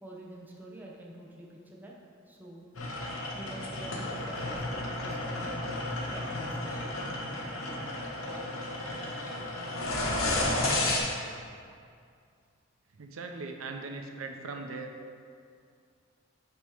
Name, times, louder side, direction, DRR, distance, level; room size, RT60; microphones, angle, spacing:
voice 1, 0.0-1.9 2.3-2.7 3.3-7.0, right 1 dB, 10° right, -3 dB, 0.7 m, -47 dB
sound 1, 2.8-11.0, left 2 dB, 85° left, 1.0 m, -32 dB
voice 2, 13.0-14.9, right 3 dB, 85° right, 4 dB, 0.5 m, -39 dB
8.1 x 2.9 x 4.9 m, 2.3 s
head